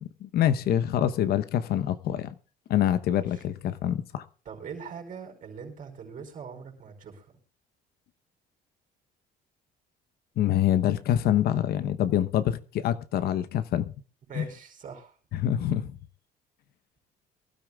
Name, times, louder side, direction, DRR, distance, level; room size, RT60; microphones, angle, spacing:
voice 1, 0.0-2.3 2.7-4.2 10.4-13.9 14.3-14.5 15.3-16.0, left 11 dB, 70° left, 0.9 m, -26 dB
voice 2, 3.0-3.4 4.4-7.4 14.3-15.2, right 6 dB, 50° right, 4.8 m, -42 dB
23.0 x 12.5 x 2.4 m
cardioid pair, 110°, 17 cm